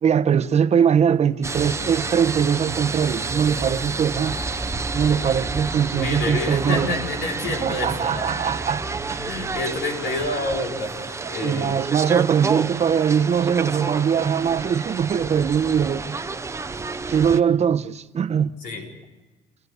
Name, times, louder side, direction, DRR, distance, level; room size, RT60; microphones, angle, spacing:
voice 1, 0.0-4.4 4.9-6.9 7.6-9.3 11.4-16.2 17.1-18.6, right 7 dB, 40° right, 0.9 m, -21 dB
sound 1, 1.4-17.4, right 4 dB, 15° right, 0.7 m, -30 dB
sound 2, 1.5-9.6, right 1 dB, 15° left, 1.5 m, -38 dB
voice 2, 5.9-8.3 9.2-11.8 18.6-18.9, left 2 dB, 80° left, 4.4 m, -28 dB
29.5 x 13.5 x 8.1 m
cardioid pair, 110°, 17 cm